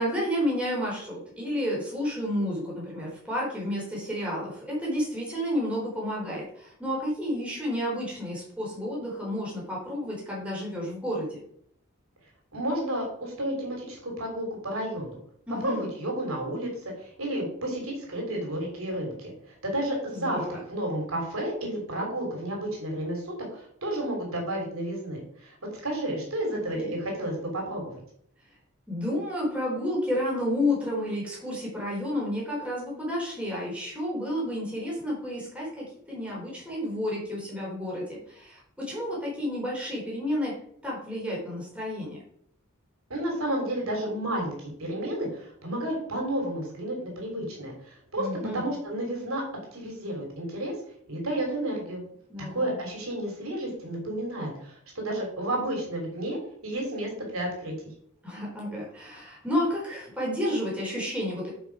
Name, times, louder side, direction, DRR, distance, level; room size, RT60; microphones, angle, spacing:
voice 1, 0.0-11.4 15.5-15.9 20.1-20.6 26.7-27.0 28.9-40.6 40.8-42.2 48.2-48.7 52.3-52.8 58.2-61.5, left 1 dB, 5° right, -5 dB, 4.1 m, -31 dB
voice 2, 12.5-15.2 15.6-16.7 17.0-23.2 23.5-25.6 25.8-28.0 43.1-48.3 48.5-49.4 49.7-50.7 51.1-52.0 52.5-57.7, right 1 dB, 80° right, 1 dB, 3.3 m, -31 dB
9.7 x 5.8 x 4.8 m, 0.66 s
head